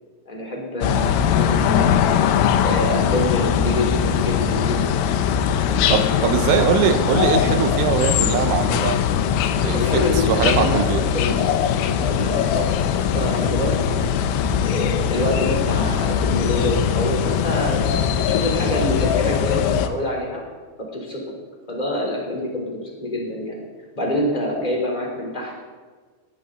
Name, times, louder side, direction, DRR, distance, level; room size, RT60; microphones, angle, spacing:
voice 1, 0.2-2.1 2.6-5.1 5.7-6.8 9.7-10.9 11.1-11.4 11.8-14.1 14.6-20.4 20.9-21.3 21.7-22.7 23.0-23.6 23.9-25.6, left 1 dB, 15° left, -1 dB, 2.1 m, -26 dB
sound 1, 0.8-19.9, left 8 dB, 85° left, 3.5 m, -21 dB
voice 2, 5.9-9.0 9.5-11.0, right 8 dB, 80° right, 8 dB, 3.3 m, -22 dB
18.0 x 14.0 x 3.9 m, 1.4 s
omnidirectional pair, 5.8 m